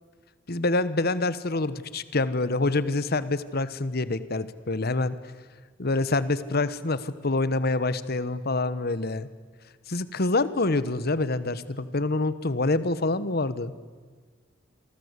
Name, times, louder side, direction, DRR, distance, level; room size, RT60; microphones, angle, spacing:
voice 1, 0.5-5.2 5.8-9.3 9.9-13.7, left 2 dB, 55° left, 15 dB, 1.2 m, -26 dB
27.0 x 24.0 x 8.3 m, 1.5 s
head